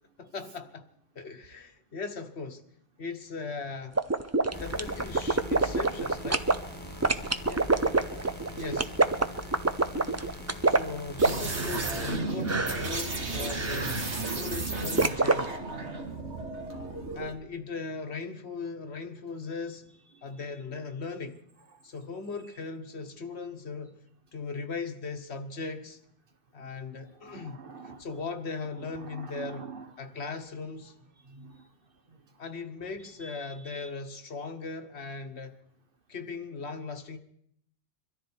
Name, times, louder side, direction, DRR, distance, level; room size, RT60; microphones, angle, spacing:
voice 1, 0.2-0.8 1.1-2.6 3.0-4.0 4.6-6.5 8.6-8.9 10.6-14.0 14.2-15.6 17.1-19.9 20.2-21.4 21.8-23.9 24.3-26.0 26.5-27.6 28.0-29.7 30.0-30.9 32.4-35.5 36.1-37.2, left 4 dB, 70° left, 1.5 m, -38 dB
sound 1, 4.0-6.6 7.0-12.2 12.5-12.9 13.5-14.0 15.0-15.4, right 3 dB, 20° right, 0.5 m, -25 dB
sound 2, 4.5-12.2, left 1 dB, 10° left, 1.8 m, -42 dB
voice 2, 7.4-7.9 8.7-8.8 9.2-9.3 27.2-28.0 28.9-29.9 31.3-31.7 33.2-33.9, right 4 dB, 55° right, 1.4 m, -45 dB
sound 3, 11.2-17.4, right 3 dB, 80° right, 2.1 m, -33 dB
23.0 x 13.5 x 4.5 m
omnidirectional pair, 1.1 m